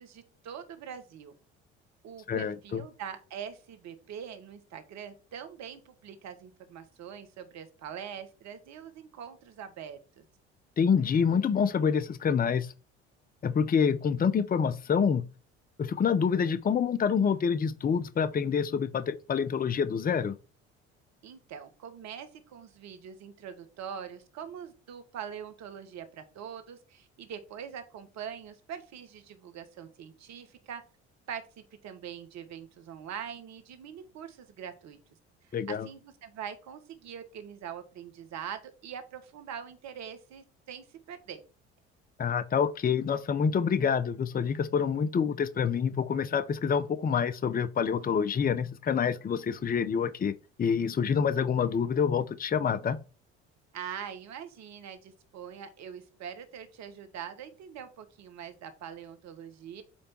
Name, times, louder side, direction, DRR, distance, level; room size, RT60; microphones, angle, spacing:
voice 1, 0.0-1.4 2.0-10.2 21.2-30.8 31.3-35.0 35.4-41.4 53.7-59.8, right 8 dB, 60° right, 1.4 m, -43 dB
voice 2, 2.3-2.8 10.8-12.7 13.4-15.2 15.8-20.3 35.5-35.9 42.2-53.0, left 6 dB, 30° left, 0.7 m, -27 dB
8.7 x 3.4 x 4.4 m
hypercardioid pair, 65°, 31 cm